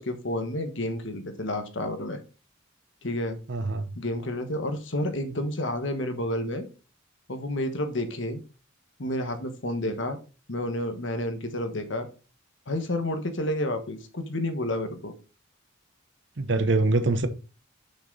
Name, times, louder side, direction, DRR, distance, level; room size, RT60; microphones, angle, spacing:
voice 1, 0.0-2.2 3.0-3.4 3.9-6.7 7.3-8.4 9.0-10.2 10.5-12.1 12.7-15.1, left 1 dB, 65° left, 1.3 m, -30 dB
voice 2, 3.5-3.9 16.4-17.3, right 2 dB, 60° right, 0.8 m, -24 dB
7.1 x 6.0 x 4.0 m
head